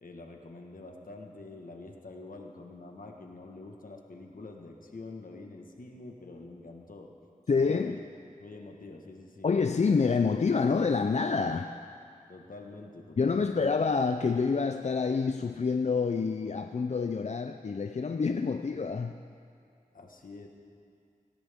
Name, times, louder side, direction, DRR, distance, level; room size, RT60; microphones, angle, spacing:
voice 1, 0.0-7.1 7.5-8.0 8.4-9.5 12.3-13.6 19.9-20.5, left 2 dB, 75° left, 2 dB, 1.5 m, -46 dB
voice 2, 7.5-8.0 9.4-11.8 13.2-19.2, left 5 dB, 50° left, 7 dB, 0.5 m, -27 dB
18.0 x 17.5 x 3.6 m, 2.4 s
wide cardioid pair, 65°, 14 cm